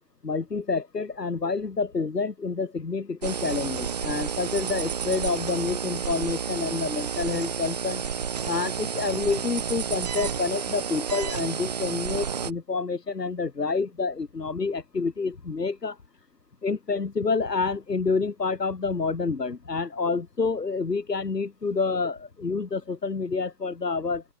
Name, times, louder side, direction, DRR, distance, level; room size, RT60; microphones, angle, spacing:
voice 1, 0.2-8.0 8.5-16.0 16.6-24.2, left 4 dB, 90° left, 6.6 m, -28 dB
sound 1, 3.2-12.5, right 7 dB, 25° right, 1.5 m, -31 dB
open air
hypercardioid pair, 170°, 47 cm